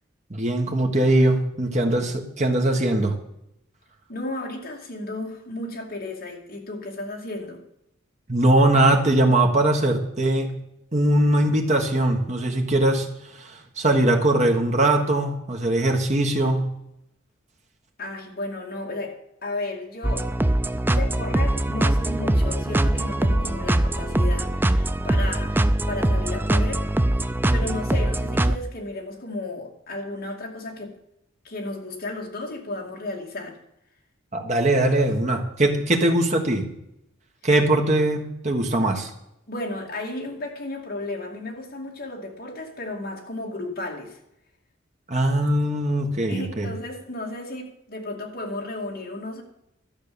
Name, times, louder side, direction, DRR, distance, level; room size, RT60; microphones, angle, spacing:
voice 1, 0.3-3.2 8.3-10.5 10.9-13.1 13.4-16.7 34.3-36.7 37.4-39.1 45.1-46.7, right 1 dB, 35° right, 3 dB, 1.5 m, -21 dB
voice 2, 4.1-7.6 18.0-20.3 20.9-26.9 27.5-30.9 31.4-33.6 39.5-44.2 46.3-49.4, left 2 dB, 45° left, 0 dB, 2.4 m, -34 dB
sound 1, 20.0-28.6, right 1 dB, 10° right, 0.3 m, -22 dB
12.5 x 7.4 x 7.0 m, 0.81 s
head